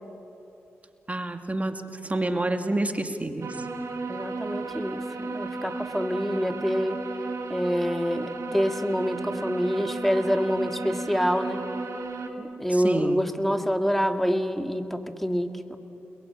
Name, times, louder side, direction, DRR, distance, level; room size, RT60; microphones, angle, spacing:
voice 1, 1.1-1.7 2.0-3.5 12.7-13.2, right 2 dB, 25° right, 6 dB, 2.5 m, -28 dB
sound 1, 3.4-12.3, right 3 dB, 65° right, 2.6 m, -34 dB
voice 2, 4.1-7.0 7.5-11.7 12.4-15.8, equal, 5° left, 6 dB, 2.2 m, -26 dB
30.0 x 21.5 x 9.0 m, 2.9 s
supercardioid pair, 40°, 5 cm